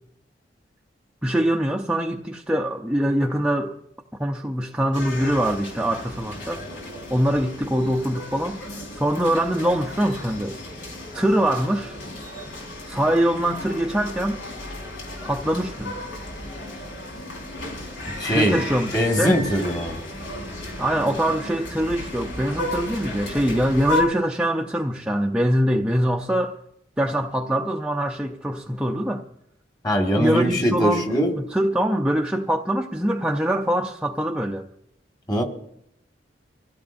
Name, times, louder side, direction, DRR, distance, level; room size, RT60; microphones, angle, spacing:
voice 1, 1.2-3.8 4.2-6.6 7.1-10.6 11.1-12.0 12.9-14.4 15.2-16.0 18.2-19.4 20.8-26.5 27.0-29.3 30.1-34.7, right 1 dB, 5° right, 0.5 m, -23 dB
sound 1, 4.9-24.0, left 2 dB, 90° left, 4.7 m, -34 dB
voice 2, 18.2-18.6 18.9-20.0 29.8-31.3 35.3-35.4, equal, 20° left, 1.8 m, -21 dB
25.0 x 16.0 x 2.6 m
head